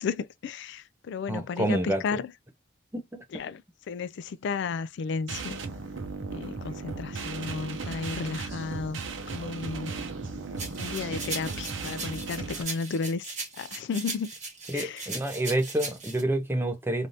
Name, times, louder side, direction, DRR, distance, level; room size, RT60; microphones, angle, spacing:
voice 1, 0.0-2.3 3.3-3.6 3.9-5.6 6.3-9.0 9.3-9.9 10.8-14.3 14.7-15.0, left 5 dB, 60° left, 0.3 m, -33 dB
voice 2, 1.3-2.2 2.9-3.2 14.7-17.1, right 1 dB, 10° right, 0.6 m, -28 dB
sound 1, 5.3-12.6, right 4 dB, 70° right, 0.7 m, -36 dB
sound 2, 10.6-16.2, right 3 dB, 40° right, 1.5 m, -38 dB
3.3 x 2.6 x 2.6 m
head